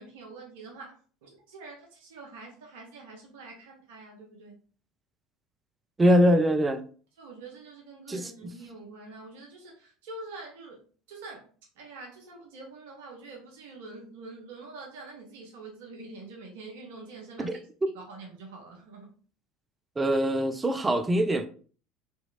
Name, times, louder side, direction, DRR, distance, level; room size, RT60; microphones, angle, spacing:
voice 1, 0.0-4.6 7.2-10.8 11.1-11.5 11.8-17.6 17.9-19.1, right 3 dB, 60° right, 0.6 m, -45 dB
voice 2, 6.0-6.8 8.1-8.3 17.4-17.6 20.0-21.5, equal, 15° right, 0.4 m, -23 dB
2.8 x 2.7 x 2.3 m
figure-of-eight pair, 70°, 0 cm